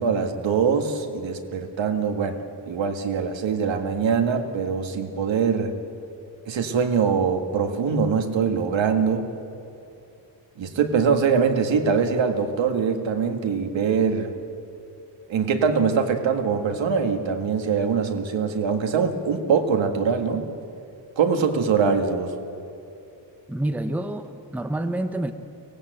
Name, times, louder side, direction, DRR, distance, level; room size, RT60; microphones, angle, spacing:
voice 1, 0.0-2.4 2.7-5.7 6.5-9.3 10.6-14.3 15.3-20.5 21.2-22.3, right 6 dB, 80° right, 5 dB, 1.9 m, -23 dB
voice 2, 23.5-25.3, right 1 dB, 5° right, 8 dB, 0.7 m, -28 dB
23.5 x 18.0 x 7.9 m, 2.6 s
wide cardioid pair, 170°, 45 cm